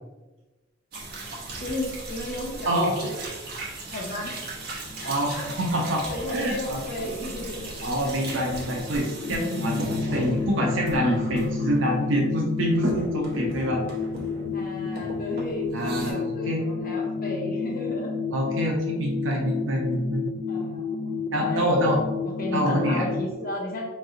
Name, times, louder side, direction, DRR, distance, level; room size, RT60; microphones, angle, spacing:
sound 1, 0.9-12.2 12.6-14.6 15.0-16.1, right 2 dB, 55° right, 0.9 m, -37 dB
voice 1, 1.6-3.2 3.9-4.3 5.0-5.4 5.8-7.7 14.5-18.1 20.5-21.8 22.4-23.9, left 1 dB, 50° left, -1 dB, 0.9 m, -34 dB
sound 2, 4.3-23.3, left 4 dB, 70° left, 0.4 m, -31 dB
voice 2, 5.1-6.0 6.3-6.8 7.8-13.8 15.7-16.6 18.3-20.2 21.3-22.0 22.5-23.1, equal, 85° right, 0 dB, 0.7 m, -26 dB
4.4 x 3.1 x 2.6 m, 1.2 s
head